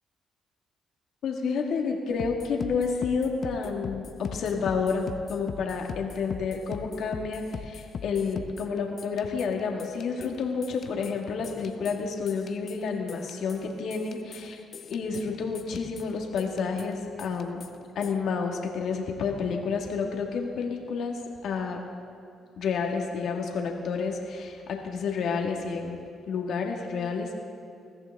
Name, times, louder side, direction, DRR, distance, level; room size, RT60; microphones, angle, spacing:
voice 1, 1.2-14.6 14.9-17.6 17.9-21.8 22.6-26.0 26.3-27.4, left 5 dB, 70° left, 2 dB, 1.7 m, -30 dB
sound 1, 2.1-18.1, left 6 dB, 55° left, 0.7 m, -41 dB
20.5 x 14.5 x 3.5 m, 2.5 s
cardioid pair, 90°, 0 cm